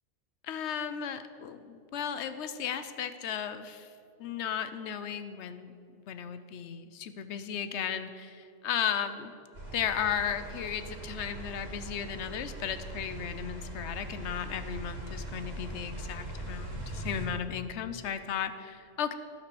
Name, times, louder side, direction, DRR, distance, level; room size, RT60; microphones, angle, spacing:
voice 1, 0.4-3.9 4.2-9.3 9.7-19.1, left 8 dB, 90° left, 11 dB, 1.0 m, -35 dB
sound 1, 9.5-17.3, right 1 dB, 80° right, 2.4 m, -41 dB
11.5 x 5.9 x 6.7 m, 2.5 s
omnidirectional pair, 1.1 m